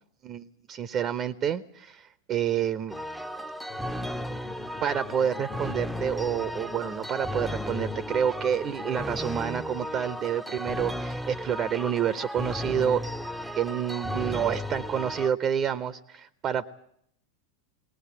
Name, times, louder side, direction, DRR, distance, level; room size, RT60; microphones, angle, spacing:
voice 1, 0.2-3.0 4.8-13.0 13.5-16.7, right 9 dB, 30° right, 15 dB, 0.9 m, -28 dB
sound 1, 2.9-15.3, equal, ahead, 0.8 m, -35 dB
sound 2, 3.7-9.2, left 8 dB, 25° left, 1.0 m, -45 dB
22.0 x 19.5 x 8.4 m, 0.70 s
figure-of-eight pair, 90°, 0 cm